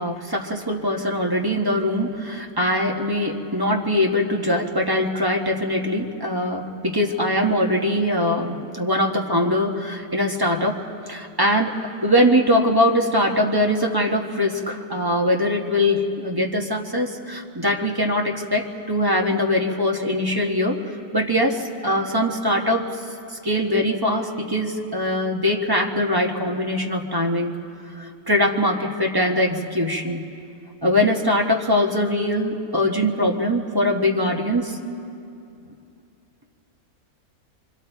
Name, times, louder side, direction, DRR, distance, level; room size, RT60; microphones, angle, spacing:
voice 1, 0.0-10.8 11.1-20.8 21.1-22.9 23.4-27.5 28.0-30.2 30.8-34.8, left 1 dB, 15° right, 0 dB, 1.2 m, -22 dB
26.5 x 24.5 x 4.6 m, 2.6 s
omnidirectional pair, 1.6 m